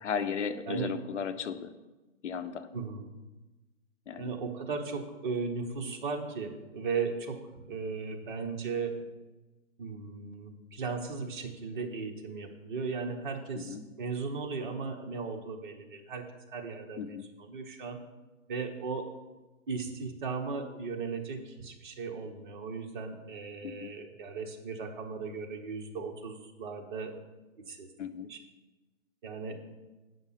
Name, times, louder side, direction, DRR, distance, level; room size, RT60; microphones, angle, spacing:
voice 1, 0.0-1.7 2.2-2.7 4.1-4.3 13.5-13.8 17.0-17.3 23.6-23.9 28.0-28.3, left 7 dB, 60° left, 10 dB, 0.8 m, -35 dB
voice 2, 2.7-3.0 4.2-7.4 7.6-8.9 9.8-16.2 16.5-17.0 17.4-18.0 18.5-19.1 19.7-27.2 27.7-27.9 28.3-28.4 29.2-29.6, right 4 dB, 40° right, 3 dB, 1.1 m, -36 dB
8.5 x 5.8 x 5.7 m, 1.1 s
hypercardioid pair, 165°, 40 cm